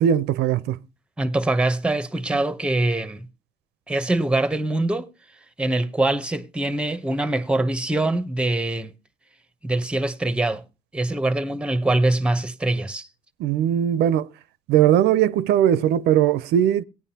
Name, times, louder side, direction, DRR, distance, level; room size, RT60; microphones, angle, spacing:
voice 1, 0.0-0.8 13.4-14.3 14.7-16.8, right 10 dB, 80° right, 0.5 m, -19 dB
voice 2, 1.2-3.3 3.9-5.1 5.6-8.9 9.6-10.6 10.9-13.1, right 2 dB, 5° right, 0.7 m, -23 dB
17.5 x 9.5 x 2.8 m
cardioid pair, 110°, 17 cm